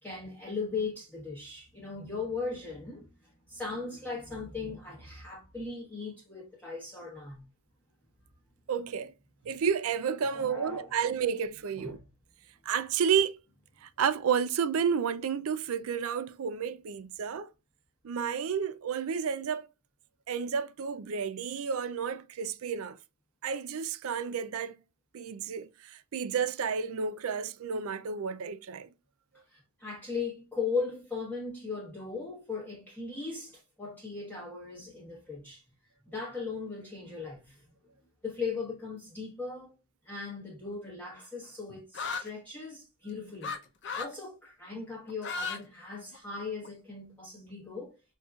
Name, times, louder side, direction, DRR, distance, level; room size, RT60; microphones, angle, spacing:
voice 1, 0.0-7.5 10.3-10.9 11.8-12.0 29.3-35.6 36.1-37.7 38.2-39.7 40.0-43.6 43.9-48.0, left 4 dB, 5° left, 1.0 m, -38 dB
voice 2, 8.7-9.1 9.4-12.0 12.7-13.4 13.8-17.5 18.0-19.7 20.3-23.0 23.4-24.8 25.1-28.9, right 7 dB, 70° right, 0.4 m, -31 dB
sound 1, 41.9-42.3 43.4-43.6 43.8-44.1 45.1-45.6 45.9-46.7, left 4 dB, 55° left, 0.7 m, -35 dB
5.2 x 2.6 x 2.3 m
head